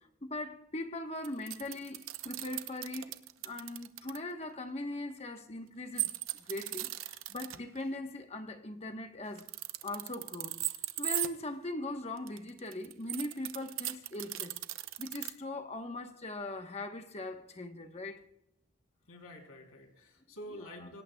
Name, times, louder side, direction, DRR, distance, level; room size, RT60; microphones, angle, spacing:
voice 1, 0.2-6.1 6.4-9.5 9.8-10.6 11.0-14.6 15.0-18.3 20.8-20.9, left 2 dB, 30° left, 1.1 m, -40 dB
sound 1, 1.2-4.2 6.0-7.6 9.3-11.3 12.2-15.3, right 15 dB, 65° right, 0.8 m, -37 dB
voice 2, 19.1-21.0, equal, 85° left, 3.4 m, -48 dB
26.0 x 18.0 x 2.3 m
head